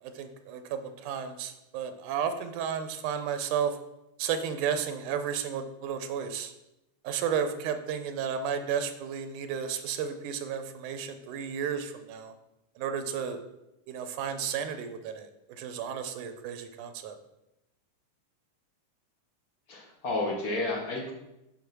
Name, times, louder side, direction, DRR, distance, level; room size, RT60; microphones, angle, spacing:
voice 1, 0.0-3.8 4.2-6.5 7.0-12.3 12.8-13.4 13.9-17.2, right 7 dB, 85° right, 9 dB, 2.2 m, -33 dB
voice 2, 19.7-21.1, left 2 dB, 40° left, -1 dB, 1.4 m, -31 dB
6.7 x 5.4 x 6.1 m, 0.90 s
omnidirectional pair, 3.6 m